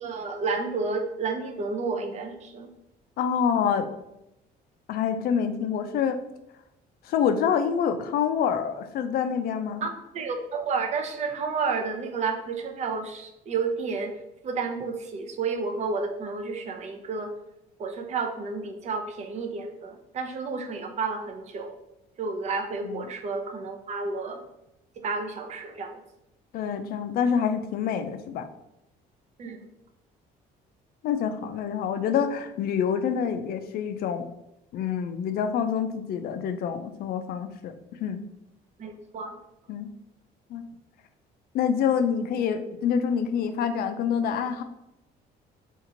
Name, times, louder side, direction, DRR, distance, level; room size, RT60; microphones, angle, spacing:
voice 1, 0.0-2.7 9.8-14.1 14.4-17.3 17.8-21.7 22.2-24.4 25.0-26.0 29.4-29.6 38.8-39.4, right 4 dB, 40° right, 5 dB, 0.5 m, -31 dB
voice 2, 3.2-3.9 4.9-6.2 7.0-9.8 22.8-23.0 26.5-28.5 31.0-34.2 34.7-37.7 38.0-38.2 39.7-39.9 40.5-40.6 41.5-44.6, left 7 dB, 65° left, 8 dB, 0.4 m, -26 dB
2.9 x 2.5 x 3.8 m, 0.86 s
cardioid pair, 110°, 17 cm